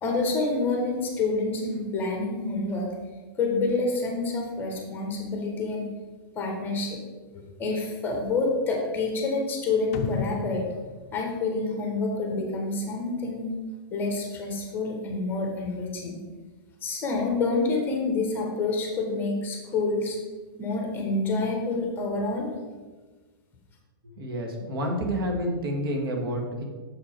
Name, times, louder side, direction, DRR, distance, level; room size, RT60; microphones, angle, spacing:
voice 1, 0.0-2.9 3.4-5.9 6.3-7.0 7.3-10.6 11.1-13.4 13.9-16.2 16.8-20.2 20.6-22.5, left 3 dB, 15° left, 1 dB, 1.2 m, -28 dB
sound 1, 9.9-12.4, left 8 dB, 40° left, 0.5 m, -35 dB
voice 2, 24.2-26.6, equal, 75° right, 2 dB, 1.7 m, -29 dB
7.1 x 5.1 x 4.5 m, 1.3 s
hypercardioid pair, 160°, 12 cm